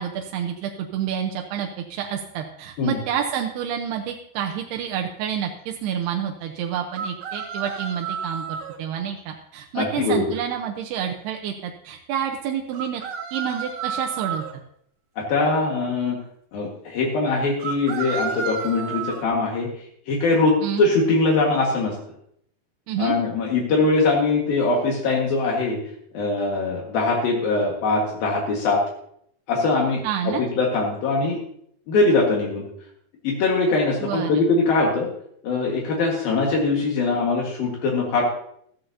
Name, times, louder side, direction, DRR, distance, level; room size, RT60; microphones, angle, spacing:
voice 1, 0.0-13.0 13.3-14.4 20.6-20.9 22.9-23.1 30.0-30.4 34.0-34.4, right 9 dB, 90° right, 2 dB, 2.9 m, -29 dB
sound 1, 6.9-8.8 12.7-14.5 17.6-19.2, right 6 dB, 65° right, 3.0 m, -31 dB
voice 2, 9.7-10.2 15.2-16.2 16.5-19.7 20.1-21.9 23.0-25.8 26.1-28.8 29.5-30.0 30.4-31.4 31.9-32.6 33.2-35.1 35.4-38.2, left 3 dB, 70° left, -2 dB, 3.4 m, -22 dB
14.5 x 14.0 x 2.8 m, 0.68 s
omnidirectional pair, 4.5 m